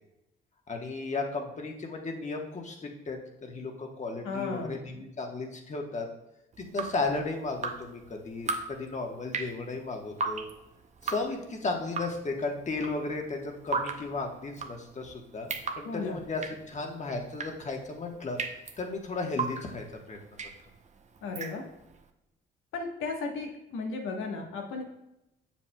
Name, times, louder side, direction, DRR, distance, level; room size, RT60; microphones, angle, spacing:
voice 1, 0.7-6.1 6.6-10.5 11.0-15.5 15.8-18.4 18.8-20.2, left 3 dB, 35° left, 2 dB, 1.2 m, -34 dB
voice 2, 4.2-4.8 15.8-16.2 21.2-21.6 22.7-24.8, left 4 dB, 85° left, 2 dB, 1.2 m, -35 dB
Drip, 6.5-22.0, right 4 dB, 35° right, 0.6 m, -38 dB
7.3 x 6.9 x 2.2 m, 0.89 s
cardioid pair, 90°, 20 cm